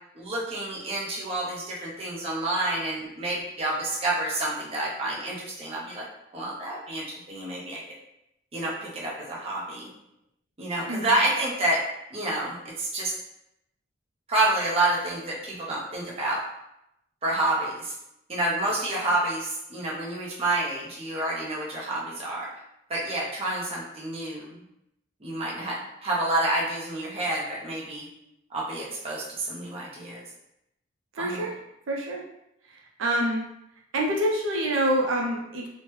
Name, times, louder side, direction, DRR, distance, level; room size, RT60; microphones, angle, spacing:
voice 1, 0.2-6.0 6.3-7.8 8.5-9.9 10.6-11.8 12.1-13.1 14.3-16.4 17.2-17.9 18.3-22.5 22.9-24.6 25.2-28.1 28.5-30.2 31.2-31.5, right 2 dB, 30° right, -4 dB, 0.6 m, -28 dB
voice 2, 31.1-31.6 31.9-32.2 33.0-33.4 33.9-35.7, right 1 dB, 80° right, -1 dB, 0.5 m, -26 dB
3.0 x 2.1 x 3.0 m, 0.83 s
head